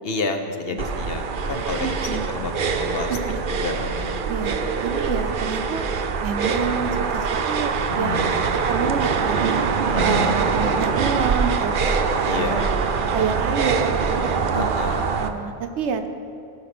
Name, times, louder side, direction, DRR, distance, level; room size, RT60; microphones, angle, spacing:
voice 1, 0.0-3.2 3.5-4.2 7.9-8.4 9.9-10.4 12.2-12.8 14.5-15.1, left 4 dB, 60° left, 6 dB, 1.1 m, -30 dB
sound 1, 0.8-15.3, right 5 dB, 55° right, 0.8 m, -23 dB
voice 2, 1.8-2.3 3.1-3.4 4.3-5.8 6.2-8.2 8.7-9.5 9.9-12.0 12.3-12.8 13.1-14.3 14.9-16.1, right 6 dB, 90° right, 7 dB, 1.1 m, -28 dB
16.5 x 5.8 x 6.0 m, 2.7 s
omnidirectional pair, 1.1 m